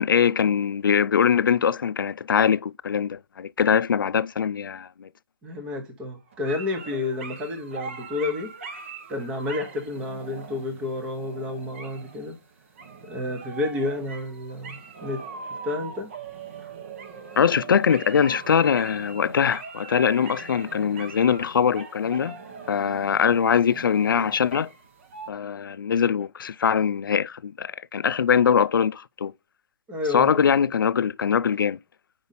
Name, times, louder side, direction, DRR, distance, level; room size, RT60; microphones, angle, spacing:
voice 1, 0.0-5.1 17.4-22.4 22.7-24.7 25.3-29.3 30.1-31.8, left 7 dB, 75° left, 0.4 m, -22 dB
voice 2, 5.4-8.5 9.1-12.4 13.1-15.2 15.5-16.1 16.6-16.7 29.9-30.5, left 2 dB, 10° right, 0.9 m, -30 dB
sound 1, 6.3-25.3, right 5 dB, 35° right, 1.0 m, -41 dB
6.9 x 5.2 x 4.1 m
hypercardioid pair, 170°, 11 cm